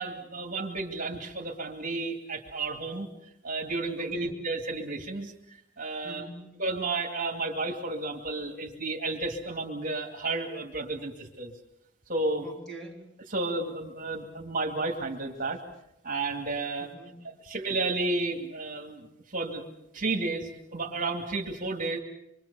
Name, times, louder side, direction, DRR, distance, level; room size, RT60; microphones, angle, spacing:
voice 1, 0.0-3.1 3.4-6.2 6.6-11.5 12.1-12.5 13.3-15.6 16.0-16.9 17.5-19.6 19.9-22.0, right 2 dB, 45° right, 2 dB, 2.6 m, -32 dB
voice 2, 4.0-4.5 6.0-6.5 12.4-13.1 16.8-17.3, right 2 dB, 5° left, -1 dB, 4.2 m, -44 dB
26.0 x 23.5 x 7.0 m, 0.82 s
head